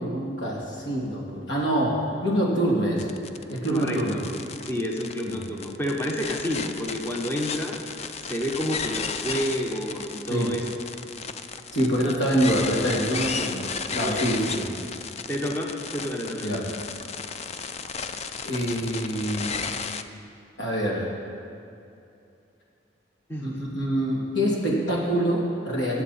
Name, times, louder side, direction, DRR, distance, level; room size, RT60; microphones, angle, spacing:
voice 1, 0.0-3.1 3.5-4.2 5.2-5.4 10.3-10.5 11.7-14.7 16.4-16.7 18.4-19.6 20.6-21.1 23.4-26.0, right 1 dB, 85° left, -3 dB, 2.8 m, -25 dB
sound 1, 3.0-20.0, left 5 dB, 35° left, 0.5 m, -34 dB
voice 2, 3.7-4.3 4.6-7.8 8.3-10.7 14.0-14.4 15.3-16.5 23.3-23.5, equal, 15° left, 0 dB, 1.1 m, -29 dB
21.5 x 8.2 x 4.3 m, 2.6 s
head